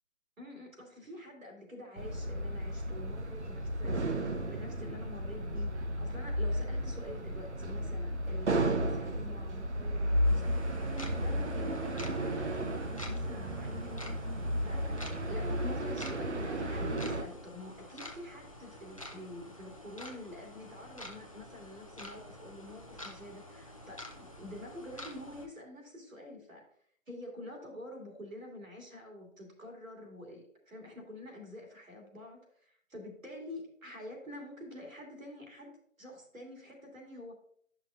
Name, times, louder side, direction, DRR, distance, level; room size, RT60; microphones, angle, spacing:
voice 1, 0.4-13.9 14.6-14.9 15.3-26.6 27.1-37.3, left 1 dB, 80° right, 1 dB, 2.7 m, -47 dB
sound 1, 2.0-17.2, right 1 dB, 60° right, 0.8 m, -33 dB
sound 2, 10.2-25.5, left 1 dB, 25° left, 0.5 m, -48 dB
10.5 x 5.9 x 2.5 m, 0.63 s
figure-of-eight pair, 155°, 39 cm